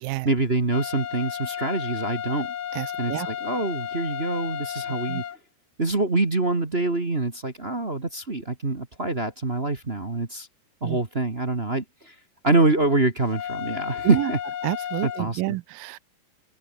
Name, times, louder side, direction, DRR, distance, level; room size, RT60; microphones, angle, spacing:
voice 1, 0.2-2.5 3.0-5.2 5.8-10.5 10.8-12.1 12.4-14.4 15.0-15.5, right 2 dB, 25° right, 1.6 m, -25 dB
sound 1, 0.7-5.4 13.3-15.2, left 9 dB, 60° left, 1.5 m, -33 dB
voice 2, 2.7-3.3 5.1-5.2 10.8-11.0 14.0-14.3 14.6-16.0, right 20 dB, 90° right, 2.3 m, -29 dB
open air
omnidirectional pair, 4.0 m